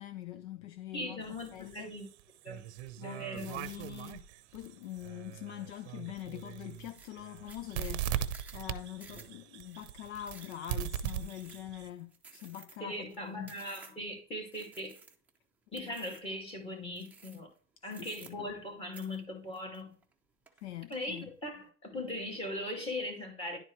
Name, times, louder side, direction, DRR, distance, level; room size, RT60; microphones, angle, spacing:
voice 1, 0.0-1.9 3.0-4.3 4.5-13.5 17.9-18.5 20.6-21.3, left 13 dB, 60° left, 0.6 m, -44 dB
voice 2, 0.9-2.1 2.4-2.6 3.0-3.5 12.8-15.0 15.7-17.5 17.8-19.9 20.9-23.6, left 1 dB, 15° left, 2.2 m, -39 dB
sound 1, 1.2-11.9, right 10 dB, 60° right, 0.7 m, -40 dB
sound 2, 4.8-5.1 5.5-6.0 6.4-6.5 6.7-14.1 14.5-15.4 15.7-16.4 16.9-17.6 17.9-18.7 18.9-20.1 20.5-21.0, right 4 dB, 5° right, 0.7 m, -55 dB
11.0 x 4.4 x 3.1 m
supercardioid pair, 140°, 40 cm